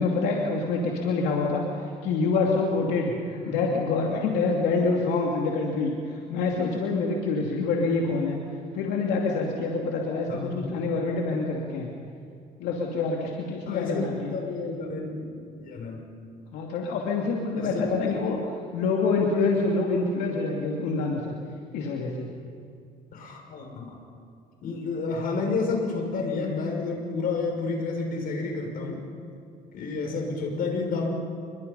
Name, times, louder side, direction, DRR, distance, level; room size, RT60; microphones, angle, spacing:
voice 1, 0.0-8.4 8.7-11.9 12.6-14.3 16.5-18.4 18.7-21.4 21.7-22.3, left 3 dB, 90° left, -1 dB, 2.7 m, -26 dB
voice 2, 10.3-10.6 13.7-16.0 17.5-18.2 23.1-23.9 24.6-29.0 29.7-31.1, left 4 dB, 60° left, 1 dB, 6.3 m, -30 dB
28.0 x 23.0 x 5.6 m, 2.4 s
cardioid pair, 110°, 17 cm